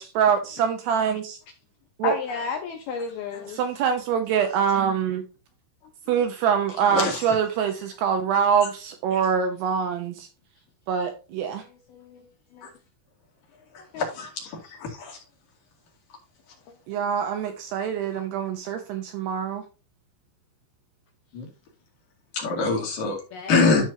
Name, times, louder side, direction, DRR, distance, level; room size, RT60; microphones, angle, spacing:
voice 1, 0.0-1.4 2.0-2.1 3.5-5.2 6.1-10.3 10.9-11.6 16.9-19.6, right 7 dB, 75° right, 2.6 m, -24 dB
voice 2, 2.0-3.6 5.8-6.3 11.6-12.3 12.5-12.7 13.8-14.1 14.6-14.7 16.7-16.8 23.3-23.6, left 5 dB, 70° left, 2.4 m, -34 dB
voice 3, 6.9-7.4 12.6-12.7 14.0-14.5 14.8-15.2 21.3-21.5 22.3-23.2 23.5-23.9, left 4 dB, 50° left, 3.5 m, -24 dB
12.0 x 6.2 x 2.8 m
omnidirectional pair, 5.5 m